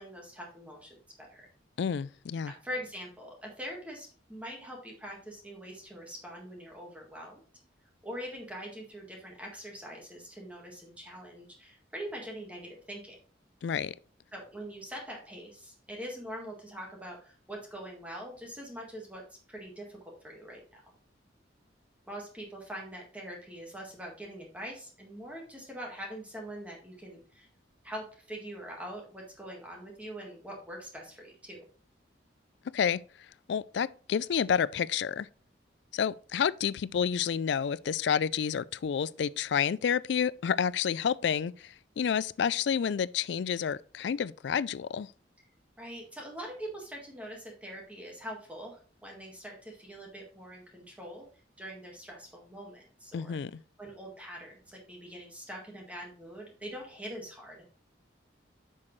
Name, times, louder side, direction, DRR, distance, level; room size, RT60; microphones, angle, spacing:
voice 1, 0.0-1.5 2.5-7.4 8.0-13.2 14.3-19.2 19.5-20.0 20.2-20.8 22.1-27.5 27.8-31.6 45.8-51.3 51.6-53.4 53.8-57.6, equal, 10° right, 1.7 m, -43 dB
voice 2, 1.8-2.5 13.6-13.9 32.7-33.0 33.5-35.3 35.9-45.1 53.1-53.5, left 7 dB, 65° left, 0.3 m, -29 dB
9.8 x 6.4 x 3.1 m
head